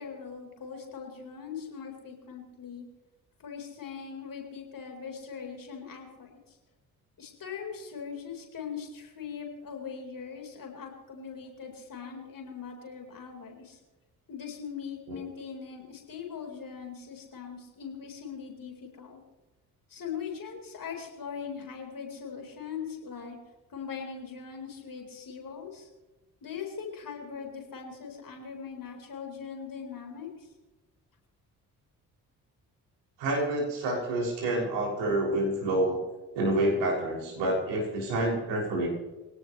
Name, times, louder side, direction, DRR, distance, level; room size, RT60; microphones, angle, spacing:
voice 1, 0.0-2.9 3.4-6.6 7.2-13.8 14.3-19.2 19.9-23.4 23.7-25.9 26.4-30.5, left 6 dB, 45° left, 2 dB, 4.5 m, -41 dB
voice 2, 33.2-36.0 36.3-38.9, right 1 dB, 65° right, -3 dB, 6.7 m, -28 dB
24.0 x 17.5 x 3.3 m, 1.1 s
figure-of-eight pair, 45°, 46 cm